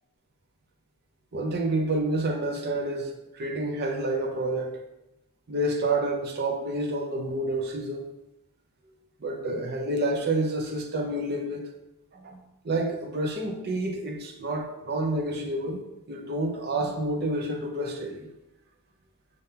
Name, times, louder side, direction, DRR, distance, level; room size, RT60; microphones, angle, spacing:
voice 1, 1.3-4.7 5.5-8.1 9.2-11.7 12.1-12.4 12.6-18.3, right 1 dB, 45° right, 3 dB, 0.6 m, -29 dB
5.1 x 3.7 x 2.8 m, 0.93 s
head